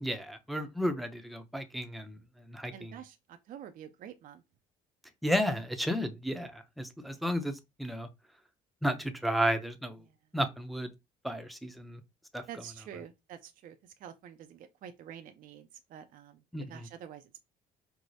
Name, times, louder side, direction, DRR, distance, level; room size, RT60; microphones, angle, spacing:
voice 1, 0.0-2.2 2.5-2.9 5.2-8.1 8.8-10.0 10.3-10.9 11.2-12.0 12.3-12.4 16.5-16.9, equal, ahead, 0.6 m, -33 dB
voice 2, 2.7-4.4 10.1-10.2 12.5-16.4 16.7-17.4, right 9 dB, 55° right, 0.4 m, -48 dB
4.6 x 2.0 x 2.7 m
cardioid pair, 110°, 17 cm